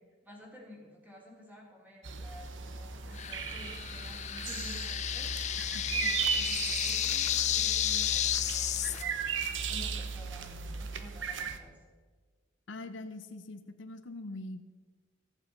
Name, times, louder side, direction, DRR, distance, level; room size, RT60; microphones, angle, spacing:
voice 1, 0.2-11.8, left 1 dB, 10° right, -2 dB, 2.8 m, -52 dB
sound 1, 2.0-11.6, right 5 dB, 80° right, 0.8 m, -36 dB
sound 2, 3.2-9.0, left 11 dB, 40° left, 0.4 m, -32 dB
voice 2, 12.7-14.6, left 2 dB, 80° left, 10 dB, 0.7 m, -43 dB
14.0 x 8.2 x 5.3 m, 1.4 s
head